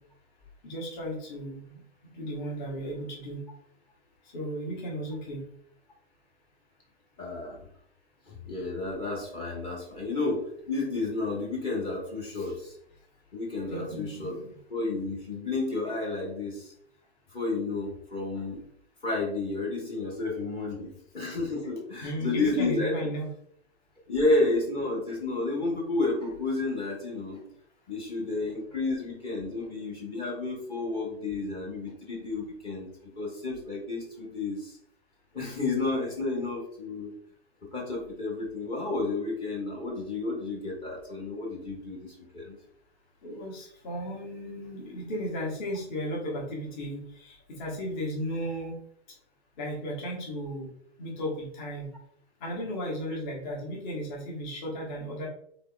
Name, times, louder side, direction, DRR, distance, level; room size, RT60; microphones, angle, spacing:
voice 1, 0.6-1.8 2.1-3.4 4.3-5.5 12.3-12.6 13.7-14.5 22.0-23.3 43.2-48.7 49.6-50.7 51.0-51.9 52.4-55.3, equal, 40° left, -3 dB, 1.1 m, -35 dB
voice 2, 7.2-7.7 8.3-12.7 13.3-14.4 14.7-16.7 17.3-18.6 19.0-22.9 24.1-27.4 27.9-32.9 33.2-34.8 35.3-37.1 37.7-42.6, left 3 dB, 15° left, -2 dB, 0.7 m, -31 dB
3.4 x 2.9 x 2.3 m, 0.65 s
figure-of-eight pair, 120°, 34 cm